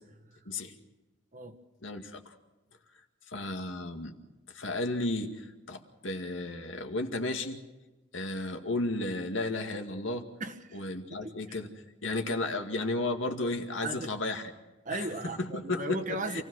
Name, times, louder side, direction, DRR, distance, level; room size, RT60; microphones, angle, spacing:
voice 1, 1.8-2.3 3.3-4.1 4.5-7.6 8.1-10.2 10.7-11.7 12.0-14.5 14.9-15.1 15.4-16.0 16.3-16.4, left 2 dB, 80° left, 2.2 m, -33 dB
voice 2, 10.4-11.4 12.4-12.5 13.8-14.1 14.8-16.4, right 2 dB, 40° right, 1.5 m, -37 dB
28.0 x 16.5 x 6.4 m
head